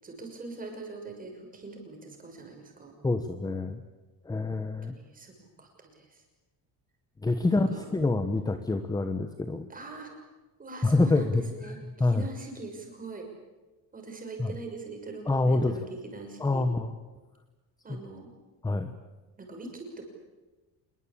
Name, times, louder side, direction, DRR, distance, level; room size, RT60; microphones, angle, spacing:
voice 1, 0.0-2.9 4.8-6.2 7.5-7.8 9.7-10.1 10.6-13.3 13.9-16.7 17.8-18.3 19.4-20.0, right 3 dB, 20° right, 2 dB, 6.2 m, -43 dB
voice 2, 3.0-3.8 4.2-5.0 7.2-9.7 10.8-12.2 14.4-14.5 15.3-15.8 16.4-16.9 18.6-18.9, left 2 dB, 10° left, 8 dB, 1.1 m, -26 dB
26.0 x 22.5 x 8.7 m, 1.2 s
cardioid pair, 165°, 40 cm